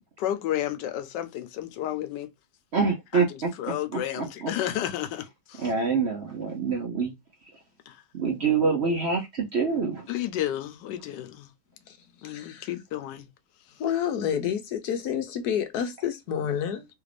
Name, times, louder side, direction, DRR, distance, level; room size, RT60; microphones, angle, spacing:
voice 1, 0.2-2.3 3.1-5.7 7.9-8.0 10.1-11.5 12.2-13.3, left 12 dB, 90° left, 1.2 m, -32 dB
voice 2, 2.7-3.5 3.9-4.5 5.6-7.1 8.1-10.1, right 5 dB, 60° right, 0.7 m, -26 dB
voice 3, 12.2-12.7 13.8-16.9, left 8 dB, 70° left, 1.2 m, -29 dB
3.3 x 2.5 x 3.2 m
omnidirectional pair, 1.8 m